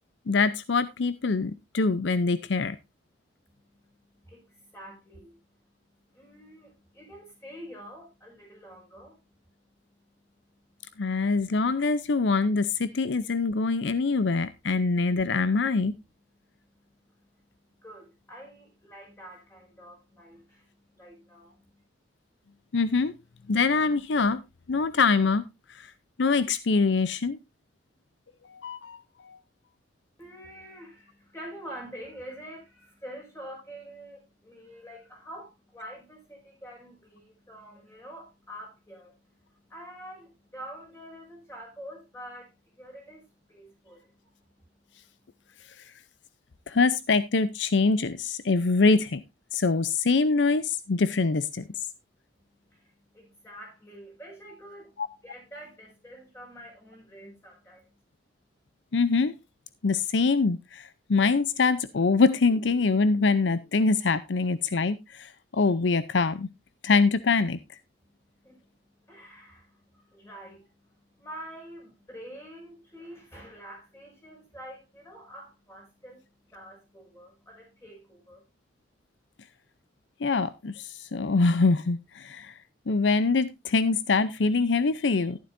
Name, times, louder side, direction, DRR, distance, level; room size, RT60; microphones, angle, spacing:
voice 1, 0.3-2.8 11.0-15.9 22.7-23.1 23.5-24.4 24.7-25.9 26.2-27.4 28.5-29.4 46.7-49.2 49.5-51.7 55.0-55.1 58.9-59.3 59.8-66.5 66.8-67.6 80.2-82.6 82.9-85.4, left 4 dB, 75° left, 0.6 m, -24 dB
voice 2, 3.5-5.3 6.1-9.2 16.6-16.7 17.7-21.8 30.2-39.2 39.5-42.5 42.8-44.3 52.7-54.9 55.2-57.9 68.4-68.7 69.0-76.2 76.5-78.5, equal, 15° left, 5.8 m, -46 dB
12.0 x 11.0 x 2.6 m
head